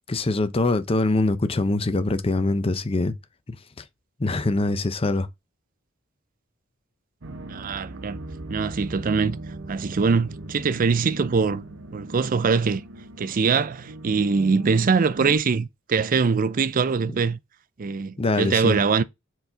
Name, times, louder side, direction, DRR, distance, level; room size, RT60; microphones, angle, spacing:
voice 1, 0.1-3.1 3.5-3.8 4.2-5.3 18.2-18.8, left 2 dB, 30° left, 0.6 m, -23 dB
sound 1, 7.2-15.4, right 2 dB, 65° right, 0.9 m, -38 dB
voice 2, 7.5-8.2 8.5-9.4 9.7-11.6 11.9-12.8 13.2-17.4 17.8-19.0, right 5 dB, 45° right, 0.4 m, -23 dB
4.7 x 4.0 x 5.5 m
head